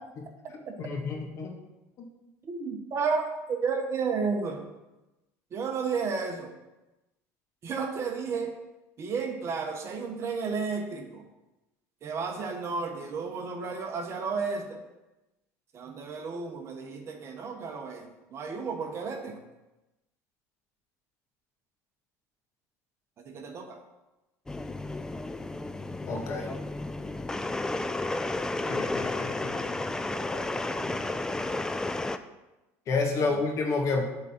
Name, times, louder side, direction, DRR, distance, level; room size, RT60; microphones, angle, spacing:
voice 1, 0.8-1.6 2.0-2.1 26.1-26.5 28.7-29.7 30.8-30.9 32.9-34.0, left 3 dB, 45° left, 2 dB, 1.5 m, -30 dB
voice 2, 2.4-4.7 5.5-6.5 7.6-8.5 9.0-11.2 12.0-14.8 15.7-19.4 23.2-23.8 30.3-30.4 33.2-33.3, right 5 dB, 40° right, 4 dB, 1.1 m, -32 dB
sound 1, 24.5-32.2, left 2 dB, 10° left, 0.4 m, -32 dB
7.6 x 3.8 x 5.9 m, 1.0 s
supercardioid pair, 105°, 7 cm